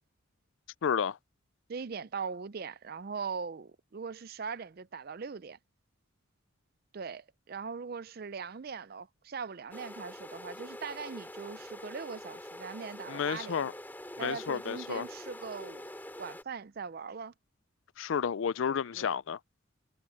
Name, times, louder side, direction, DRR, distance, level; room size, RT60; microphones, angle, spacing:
voice 1, 0.8-1.2 13.1-13.7 14.2-15.0 18.0-19.4, left 7 dB, 65° left, 0.4 m, -31 dB
voice 2, 1.7-5.6 6.9-13.7 14.2-15.9 16.2-17.3 18.6-19.2, right 5 dB, 45° right, 0.4 m, -40 dB
sound 1, 9.7-16.4, left 1 dB, 10° left, 2.6 m, -45 dB
head